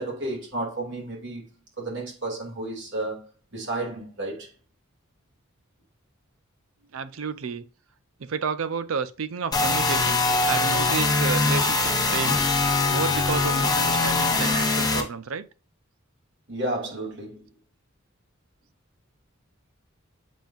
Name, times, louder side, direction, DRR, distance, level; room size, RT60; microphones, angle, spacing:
voice 1, 0.0-1.4 1.8-4.5 16.5-17.5, right 2 dB, 65° right, 2.4 m, -32 dB
voice 2, 6.9-7.7 8.2-12.4 12.9-15.5, right 6 dB, 80° right, 0.5 m, -31 dB
sound 1, 9.5-15.0, left 3 dB, 20° left, 1.1 m, -22 dB
7.3 x 5.4 x 2.4 m
head